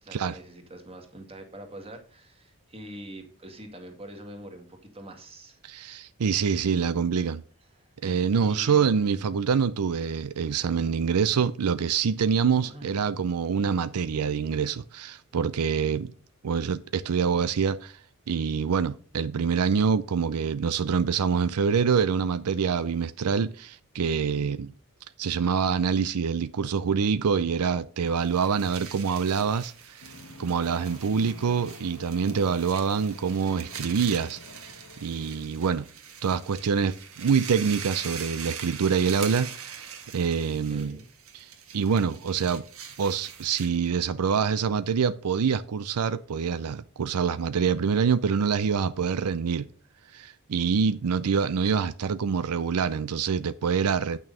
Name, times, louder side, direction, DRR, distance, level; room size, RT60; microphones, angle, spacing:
voice 1, 0.0-6.1 7.8-7.9 8.4-9.4 12.6-13.1 40.7-41.1, right 1 dB, 25° right, 2.0 m, -44 dB
voice 2, 5.6-7.4 8.0-16.1 16.4-18.0 18.3-24.7 25.2-30.0 30.4-35.9 36.2-41.0 41.3-42.6 43.0-49.7 50.1-54.2, right 6 dB, 90° right, 0.5 m, -26 dB
sound 1, 28.1-43.9, right 7 dB, 65° right, 1.7 m, -42 dB
sound 2, 30.0-35.5, left 2 dB, 65° left, 1.3 m, -48 dB
9.0 x 6.2 x 5.4 m
head